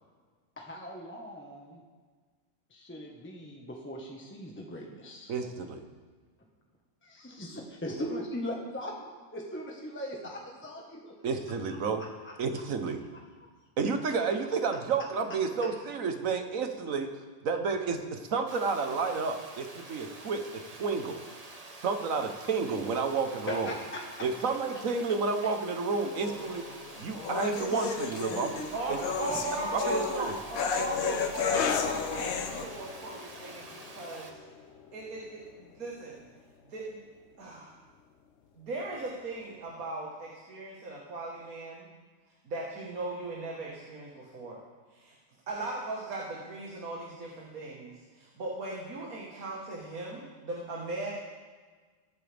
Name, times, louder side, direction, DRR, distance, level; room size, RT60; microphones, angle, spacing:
voice 1, 0.6-1.8 2.7-5.3 7.0-11.1 12.2-12.3 23.5-24.2 27.7-27.9 28.3-28.7 29.3-29.4, left 1 dB, 10° left, 0 dB, 1.3 m, -39 dB
voice 2, 5.3-5.8 11.2-12.0 12.4-13.0 13.8-17.1 17.4-21.2 21.8-23.7 24.2-26.6 27.0-28.6 28.9-29.0 29.6-30.3, right 4 dB, 70° right, 6 dB, 1.4 m, -31 dB
Water, 18.5-34.3, right 2 dB, 30° right, 1.1 m, -48 dB
sound 1, 26.2-32.6, left 6 dB, 80° left, 1.3 m, -33 dB
voice 3, 28.7-34.4 34.9-36.2 36.6-37.0 37.4-37.8 38.6-41.9 42.4-44.6 44.9-45.1 45.5-51.1, right 2 dB, 85° right, -3 dB, 2.0 m, -38 dB
sound 2, 31.5-38.5 38.7-39.0 39.7-39.8, left 7 dB, 60° left, 0.9 m, -39 dB
21.5 x 8.9 x 3.5 m, 1.5 s
omnidirectional pair, 1.5 m